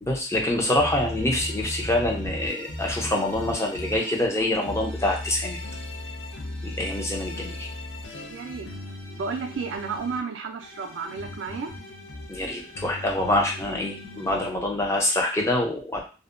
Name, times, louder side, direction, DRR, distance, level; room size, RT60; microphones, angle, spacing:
voice 1, 0.0-5.6 6.6-7.7 12.3-16.0, left 1 dB, 15° left, 0 dB, 0.5 m, -25 dB
sound 1, 0.8-4.2 4.6-10.2 10.6-14.5, left 1 dB, 70° left, 0.6 m, -37 dB
voice 2, 8.3-8.7 9.2-11.7, right 5 dB, 75° right, 3 dB, 0.4 m, -32 dB
2.6 x 2.1 x 2.4 m, 0.34 s
head